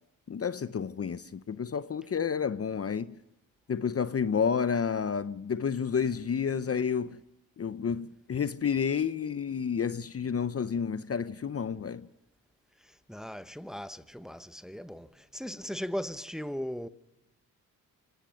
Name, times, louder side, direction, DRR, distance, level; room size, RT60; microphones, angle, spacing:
voice 1, 0.3-3.2 3.7-7.2 7.6-12.1, left 6 dB, 40° left, 0.8 m, -30 dB
voice 2, 12.8-16.9, equal, ahead, 1.1 m, -38 dB
26.5 x 18.5 x 6.4 m
supercardioid pair, 55°, 38 cm